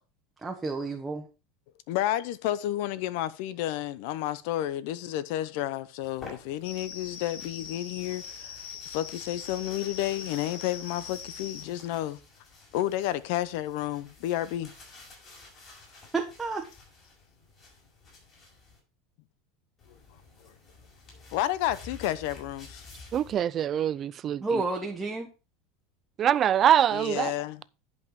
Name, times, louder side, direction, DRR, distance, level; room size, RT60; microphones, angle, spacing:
voice 1, 0.4-1.3 16.1-16.7 24.4-25.3, right 3 dB, 10° right, 1.1 m, -30 dB
voice 2, 1.9-12.2 12.7-14.7 20.4-20.5 21.3-22.9 26.9-27.6, left 13 dB, 65° left, 0.7 m, -31 dB
sound 1, 6.0-18.8 19.8-23.4, left 3 dB, 35° left, 5.2 m, -51 dB
sound 2, 6.6-11.6, left 7 dB, 85° left, 1.7 m, -42 dB
voice 3, 23.1-24.6 26.2-27.3, right 10 dB, 30° right, 0.4 m, -24 dB
10.5 x 5.5 x 4.7 m
supercardioid pair, 140°, 0 cm